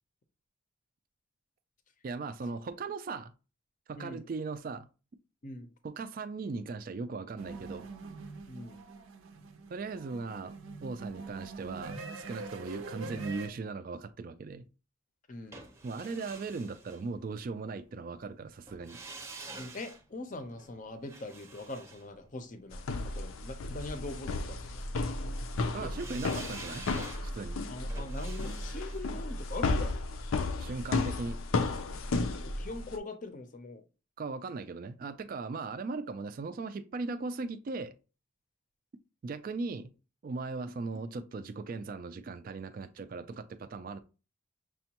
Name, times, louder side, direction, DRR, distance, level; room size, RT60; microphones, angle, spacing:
voice 1, 2.0-3.3 3.9-4.9 5.8-7.9 9.7-10.6 10.8-14.6 15.8-19.0 25.7-27.6 30.6-31.4 34.2-37.9 39.2-39.9 40.2-44.0, right 4 dB, 45° right, 0.3 m, -38 dB
voice 2, 4.0-4.3 5.4-5.7 8.5-8.8 15.3-15.6 19.6-25.2 25.8-26.1 27.7-29.9 32.4-33.8, left 2 dB, 40° left, 0.5 m, -42 dB
sound 1, 7.4-13.5, right 3 dB, 85° right, 0.6 m, -44 dB
sound 2, 15.5-17.6 18.7-22.9 25.9-30.9 31.2-31.3, right 3 dB, 15° right, 0.6 m, -49 dB
sound 3, 22.7-33.0, left 3 dB, 85° left, 0.5 m, -33 dB
6.1 x 2.2 x 2.9 m
head